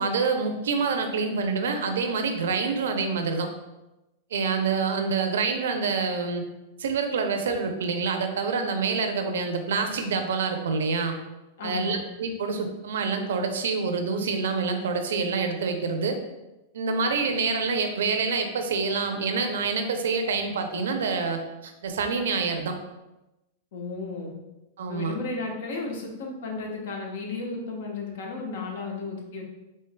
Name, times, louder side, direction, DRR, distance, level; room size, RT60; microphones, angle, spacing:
voice 1, 0.0-3.5 4.3-6.4 6.8-11.1 11.6-16.2 16.7-22.8 24.8-25.2, right 4 dB, 80° right, 5 dB, 0.5 m, -27 dB
voice 2, 11.6-12.0 23.7-24.3 24.9-29.4, left 3 dB, 70° left, 0 dB, 0.9 m, -34 dB
4.5 x 3.1 x 2.2 m, 0.98 s
hypercardioid pair, 125°, 0 cm